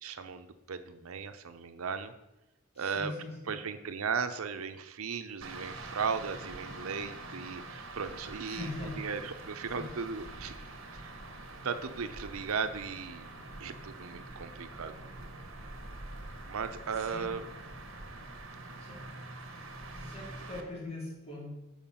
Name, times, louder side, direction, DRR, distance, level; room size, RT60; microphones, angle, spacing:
voice 1, 0.0-2.1 2.8-3.1 3.5-8.7 9.0-10.5 10.9-11.2 11.6-13.3 13.6-15.1 16.4-17.4, right 5 dB, 85° right, 10 dB, 0.6 m, -36 dB
voice 2, 2.7-3.5 8.4-9.0 9.7-9.9 17.1-17.3 18.8-19.0 19.9-21.5, left 2 dB, 30° left, -5 dB, 2.6 m, -41 dB
sound 1, 5.4-20.6, right 2 dB, 70° right, 1.1 m, -45 dB
7.1 x 5.0 x 5.6 m, 0.98 s
head